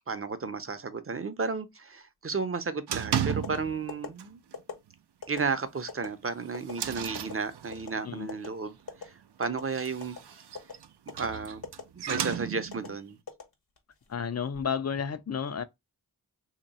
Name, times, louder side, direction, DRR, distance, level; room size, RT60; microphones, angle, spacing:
voice 1, 0.1-4.4 5.3-10.4 11.2-11.6 11.9-13.2, right 4 dB, 35° right, 0.6 m, -33 dB
sound 1, 2.9-3.9 4.2-4.5 4.9-5.0 5.4-5.5 6.1-8.1 9.5-13.0, right 9 dB, 80° right, 0.6 m, -34 dB
sound 2, 3.3-3.5 3.9-4.1 4.5-4.8 5.2-5.4 5.9-6.1 6.5-6.7 7.1-7.3 7.7-7.9 8.3-8.5 8.9-9.0 9.4-9.7 10.0-10.2 10.5-10.7 11.1-11.3 11.6-11.8 12.2-12.4 12.7-12.9 13.3-13.9 14.3-14.6, left 5 dB, 65° left, 1.2 m, -39 dB
voice 2, 14.1-15.6, left 7 dB, 40° left, 0.5 m, -31 dB
2.9 x 2.9 x 4.0 m
cardioid pair, 55°, 40 cm